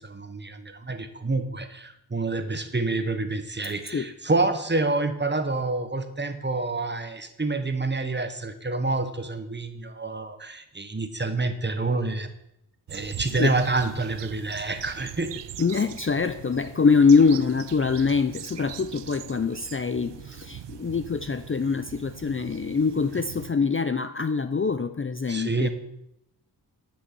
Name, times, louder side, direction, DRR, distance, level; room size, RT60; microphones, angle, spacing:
voice 1, 0.0-12.3 12.9-15.3 23.1-23.2 25.3-25.7, right 3 dB, 25° right, 8 dB, 1.2 m, -28 dB
sound 1, 12.9-23.5, right 11 dB, 75° right, 0.5 m, -42 dB
voice 2, 15.6-25.7, left 5 dB, 30° left, 10 dB, 0.5 m, -24 dB
11.5 x 6.2 x 6.1 m, 0.82 s
wide cardioid pair, 70°, 42 cm